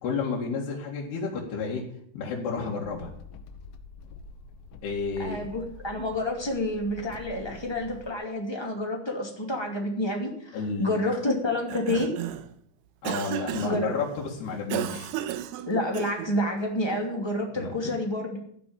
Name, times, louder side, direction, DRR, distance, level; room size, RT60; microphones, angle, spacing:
voice 1, 0.0-1.8 2.1-3.1 4.8-5.4 10.5-11.0 13.0-15.1 17.6-17.7, left 5 dB, 65° left, -4 dB, 4.0 m, -31 dB
sound 1, 2.8-8.1, left 3 dB, 85° left, 3.4 m, -46 dB
voice 2, 5.2-12.1 13.6-13.9 15.7-18.4, left 1 dB, 15° left, 1 dB, 0.9 m, -29 dB
Cough, 11.5-12.5 13.1-13.9 14.7-16.4, right 12 dB, 80° right, 2.5 m, -33 dB
14.0 x 6.8 x 8.7 m, 0.66 s
omnidirectional pair, 5.4 m